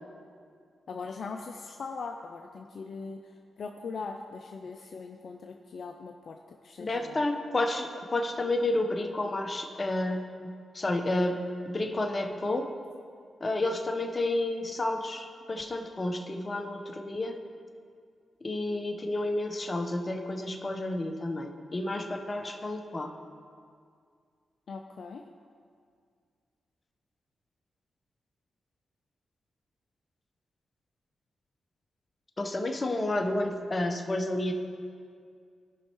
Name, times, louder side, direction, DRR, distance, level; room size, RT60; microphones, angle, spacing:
voice 1, 0.9-7.2 24.7-25.2, left 4 dB, 65° left, 4 dB, 0.4 m, -40 dB
voice 2, 6.8-11.4 11.7-12.7 13.4-17.3 18.4-23.1 32.4-34.5, left 2 dB, 35° left, 5 dB, 0.9 m, -30 dB
15.0 x 5.4 x 3.0 m, 2.2 s
supercardioid pair, 50°, 0 cm